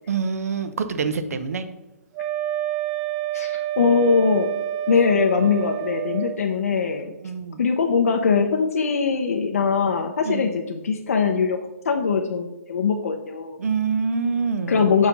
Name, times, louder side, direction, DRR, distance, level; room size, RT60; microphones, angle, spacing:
voice 1, 0.1-1.7 7.2-7.6 10.2-10.5 13.6-14.9, right 5 dB, 75° right, 10 dB, 0.7 m, -26 dB
Wind instrument woodwind instrument, 2.1-6.4, right 12 dB, 20° right, 0.3 m, -28 dB
voice 2, 3.3-4.5 4.9-7.1 7.6-11.6 11.8-13.6 14.7-15.1, left 5 dB, 75° left, 4 dB, 0.7 m, -21 dB
5.7 x 4.8 x 5.2 m, 0.98 s
hypercardioid pair, 165°, 8 cm